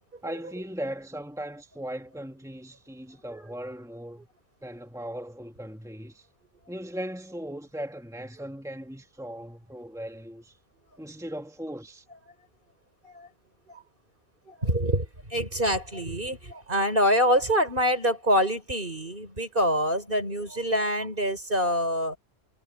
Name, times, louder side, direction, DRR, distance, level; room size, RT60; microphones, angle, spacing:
voice 1, 0.2-4.3 4.6-6.3 6.7-10.6 11.0-12.0, equal, 5° right, 2.2 m, -38 dB
voice 2, 14.5-22.2, equal, 50° right, 5.5 m, -26 dB
omnidirectional pair, 1.1 m